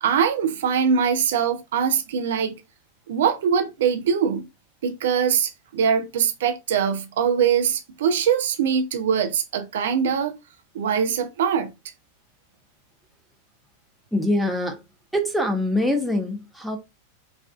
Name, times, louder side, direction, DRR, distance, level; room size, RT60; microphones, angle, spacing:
voice 1, 0.0-2.6 3.1-4.5 4.8-10.4 10.7-11.7, right 7 dB, 60° right, 0.6 m, -22 dB
voice 2, 14.1-14.8 15.1-16.8, left 1 dB, 5° right, 0.9 m, -24 dB
4.9 x 2.5 x 2.4 m
figure-of-eight pair, 90°, 0 cm